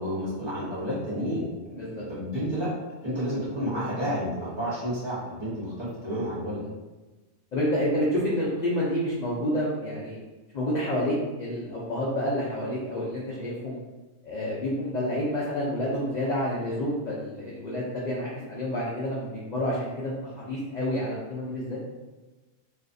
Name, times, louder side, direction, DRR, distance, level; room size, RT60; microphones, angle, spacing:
voice 1, 0.0-2.7 3.0-6.6, equal, 25° right, -11 dB, 0.8 m, -31 dB
voice 2, 7.5-10.2 10.5-13.8 14.2-21.8, equal, 60° left, -6 dB, 0.4 m, -29 dB
2.5 x 2.3 x 2.6 m, 1.2 s
omnidirectional pair, 1.3 m